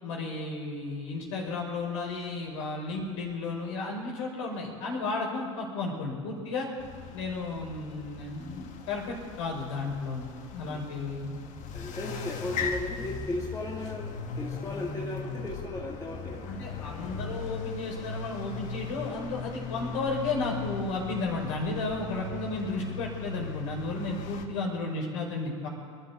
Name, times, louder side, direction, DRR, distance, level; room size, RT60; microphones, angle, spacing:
voice 1, 0.0-6.7 7.1-11.3 16.5-25.7, left 3 dB, 70° left, -1 dB, 5.1 m, -33 dB
sound 1, 6.8-24.5, left 4 dB, 50° left, 1.7 m, -38 dB
voice 2, 11.7-16.4, left 1 dB, 20° left, -3 dB, 2.2 m, -36 dB
25.5 x 12.5 x 4.2 m, 2.1 s
hypercardioid pair, 75°, 16 cm